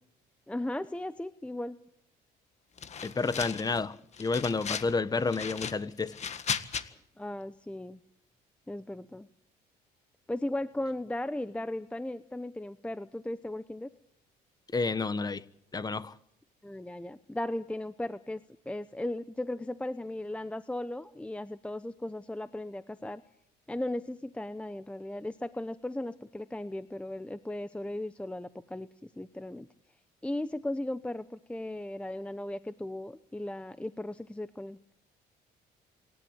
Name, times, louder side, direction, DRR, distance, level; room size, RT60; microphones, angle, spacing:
voice 1, 0.5-1.8 7.2-8.0 8.7-9.3 10.3-13.9 16.6-23.2 23.7-29.7 30.2-34.8, left 1 dB, 5° left, 0.8 m, -36 dB
sound 1, 2.8-3.8 4.1-4.9 5.3-6.8, left 7 dB, 40° left, 1.8 m, -36 dB
voice 2, 3.0-6.2 14.7-15.4 15.7-16.1, left 4 dB, 25° left, 1.3 m, -30 dB
26.5 x 12.5 x 9.0 m
cardioid pair, 110°, 17 cm